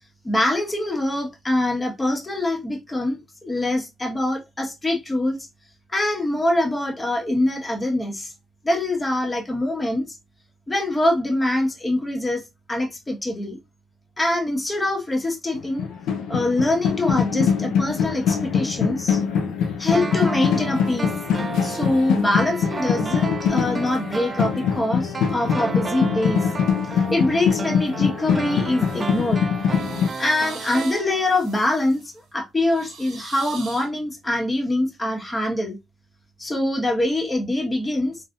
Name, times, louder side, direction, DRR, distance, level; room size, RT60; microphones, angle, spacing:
voice 1, 0.2-5.5 5.9-8.3 8.6-10.2 10.7-12.4 12.7-13.6 14.2-15.9 16.3-19.2 19.8-21.1 21.6-26.5 26.9-29.4 30.2-32.0 32.3-35.8 36.4-38.2, left 1 dB, 20° left, 1.5 m, -24 dB
sound 1, 15.6-30.1, left 7 dB, 85° left, 0.8 m, -23 dB
sound 2, 19.9-31.6 31.8-31.9, right 4 dB, 30° right, 0.4 m, -33 dB
sound 3, 28.8-29.2 29.6-32.1 32.6-33.9, right 5 dB, 85° right, 1.7 m, -42 dB
3.9 x 3.4 x 2.5 m
cardioid pair, 90°, 0 cm